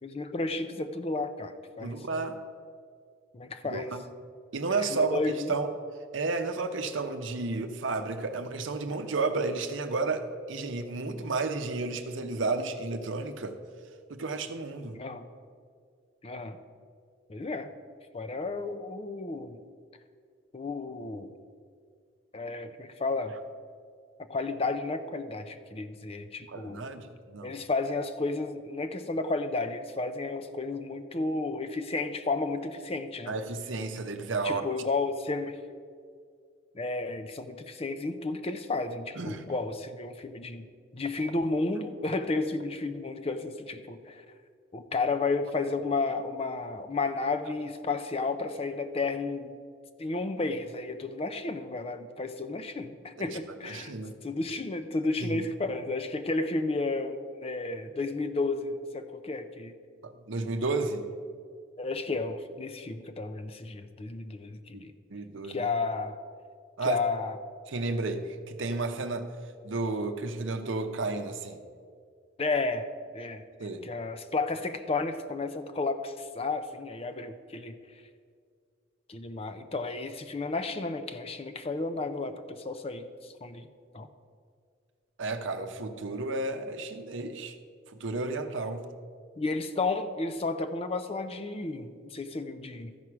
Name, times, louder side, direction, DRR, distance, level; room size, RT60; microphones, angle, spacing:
voice 1, 0.0-2.0 3.3-3.9 4.9-5.5 14.9-15.3 16.2-16.6 17.3-17.7 18.1-19.6 20.5-21.3 22.3-23.3 24.2-26.8 27.4-33.4 34.4-35.6 36.7-40.7 40.9-44.2 44.7-49.5 50.0-53.9 54.2-59.7 61.8-64.9 65.5-66.2 66.8-67.4 72.4-72.9 73.1-73.4 73.8-77.8 79.1-83.7 83.9-84.1 89.4-92.9, left 3 dB, 30° left, 9 dB, 0.5 m, -32 dB
voice 2, 1.8-2.4 3.7-4.0 4.5-5.2 5.5-5.7 6.1-13.6 14.1-15.0 26.5-27.6 33.3-34.6 39.2-39.4 53.2-54.2 55.2-55.5 60.0-61.1 64.7-65.6 66.8-67.0 67.7-69.3 69.6-71.6 73.6-73.9 85.2-87.5 87.9-88.8, right 3 dB, 65° right, 7 dB, 0.7 m, -32 dB
13.5 x 4.8 x 5.9 m, 2.1 s
head